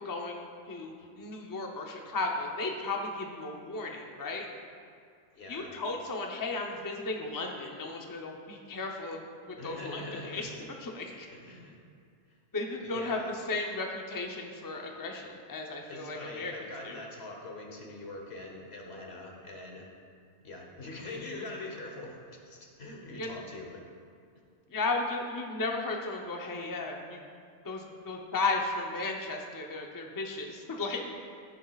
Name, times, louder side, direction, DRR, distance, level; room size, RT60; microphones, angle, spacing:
voice 1, 0.0-4.5 5.5-10.5 10.8-11.3 12.5-13.2 13.5-16.5 16.8-17.0 23.2-23.3 24.7-27.2 27.6-31.0, left 3 dB, 20° left, 1 dB, 0.6 m, -35 dB
voice 2, 5.3-5.8 9.5-10.4 11.1-11.8 12.8-13.3 15.9-19.9 20.4-23.8, left 2 dB, 65° left, 1 dB, 1.4 m, -43 dB
15.0 x 7.2 x 2.4 m, 2.3 s
omnidirectional pair, 1.2 m